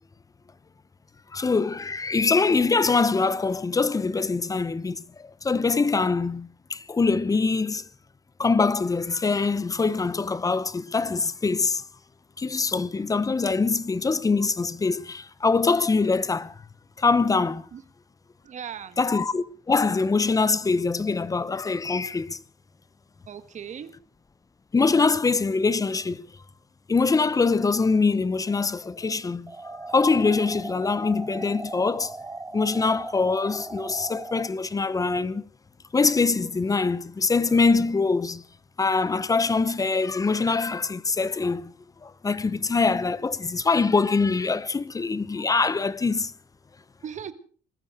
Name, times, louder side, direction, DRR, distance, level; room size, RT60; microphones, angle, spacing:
voice 1, 1.3-7.9 8.4-11.8 12.4-16.6 17.0-17.7 19.0-22.4 24.7-26.3 26.9-29.5 29.9-32.1 32.5-35.4 35.9-38.4 38.8-41.7 42.0-46.3, left 4 dB, 20° left, 0.9 m, -23 dB
voice 2, 18.4-19.0 23.3-23.9 47.0-47.3, right 8 dB, 45° right, 1.6 m, -37 dB
sound 1, 29.5-34.5, right 3 dB, 15° right, 0.8 m, -38 dB
21.0 x 13.5 x 5.0 m
cardioid pair, 110°, 17 cm